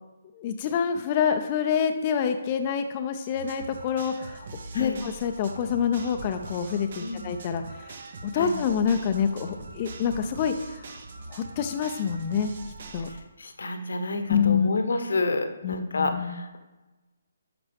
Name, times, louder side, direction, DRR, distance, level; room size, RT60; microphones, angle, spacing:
voice 1, 0.3-4.5 4.7-8.0 8.2-10.8 11.3-12.5 12.9-13.1 14.3-14.7 15.6-16.4, left 7 dB, 30° left, 6 dB, 0.5 m, -27 dB
sound 1, 3.3-13.2, right 3 dB, 55° right, 1.1 m, -42 dB
voice 2, 13.1-16.6, left 3 dB, 80° left, 7 dB, 1.0 m, -29 dB
11.0 x 5.9 x 3.5 m, 1.1 s
hypercardioid pair, 155°, 0 cm